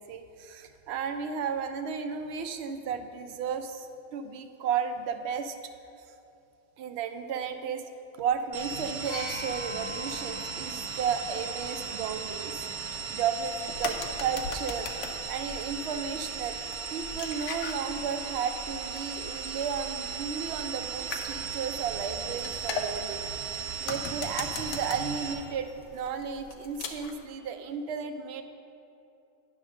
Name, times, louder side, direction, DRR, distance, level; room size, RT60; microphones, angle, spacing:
voice 1, 0.0-5.6 6.8-7.8 8.1-12.6 13.1-14.9 15.3-16.6 16.9-23.2 23.8-28.4, right 6 dB, 65° right, 7 dB, 0.7 m, -33 dB
sound 1, 8.5-25.3, right 6 dB, 90° right, 1.3 m, -37 dB
sound 2, 9.0-12.8 13.9-14.0, left 3 dB, 40° left, 0.9 m, -43 dB
sound 3, 13.4-27.2, left 4 dB, 80° left, 1.0 m, -41 dB
9.6 x 3.6 x 6.2 m, 2.7 s
omnidirectional pair, 1.4 m